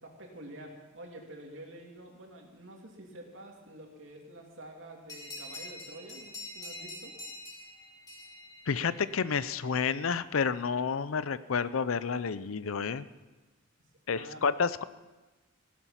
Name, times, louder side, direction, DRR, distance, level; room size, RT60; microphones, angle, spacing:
voice 1, 0.0-7.1 14.1-14.4, right 1 dB, 65° right, 1 dB, 2.8 m, -48 dB
sound 1, 5.1-9.3, left 2 dB, 20° left, 3.0 m, -45 dB
voice 2, 8.7-13.1 14.1-14.8, left 5 dB, 85° left, 16 dB, 0.6 m, -30 dB
16.5 x 12.0 x 5.8 m, 1.2 s
head